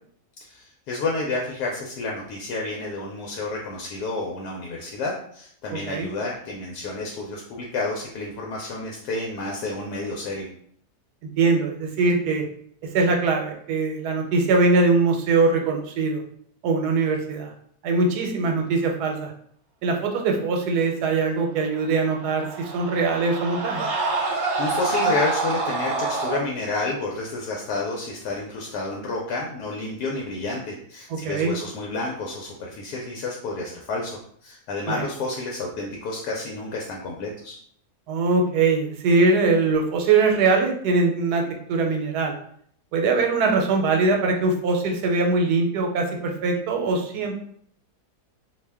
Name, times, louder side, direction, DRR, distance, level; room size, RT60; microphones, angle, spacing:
voice 1, 0.4-10.5 24.1-37.6, left 2 dB, 80° left, -2 dB, 1.1 m, -30 dB
voice 2, 11.4-12.4 12.9-16.2 16.6-17.5 17.8-19.3 19.8-23.9 31.1-31.5 34.9-35.0 38.1-41.4 41.7-42.3 42.9-47.4, right 3 dB, 80° right, 2 dB, 1.1 m, -22 dB
Screaming, 21.9-26.4, right 3 dB, 60° right, 0.9 m, -27 dB
2.7 x 2.1 x 3.3 m, 0.63 s
omnidirectional pair, 1.7 m